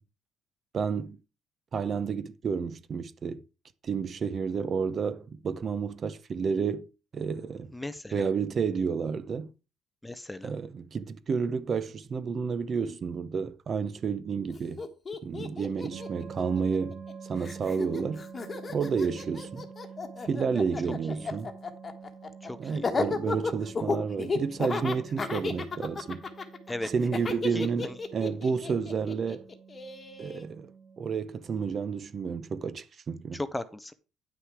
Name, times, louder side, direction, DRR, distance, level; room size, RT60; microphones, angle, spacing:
voice 1, 0.7-1.2 1.7-3.4 3.8-6.9 7.1-7.7 8.1-9.5 10.4-14.8 15.2-18.2 18.7-19.7 20.2-21.5 22.6-26.2 26.9-29.4 30.2-30.7 31.0-33.4, right 5 dB, 35° right, 0.7 m, -30 dB
voice 2, 7.7-8.2 10.0-10.5 21.2-21.3 22.4-22.9 26.7-26.9 27.5-27.9 33.3-33.9, left 1 dB, 5° left, 0.6 m, -37 dB
Laughter, 14.5-14.6 14.8-17.1 17.4-30.4, left 4 dB, 25° left, 1.3 m, -34 dB
sound 1, 15.9-31.2, right 6 dB, 55° right, 2.4 m, -47 dB
9.6 x 6.2 x 4.8 m
cardioid pair, 145°, 0 cm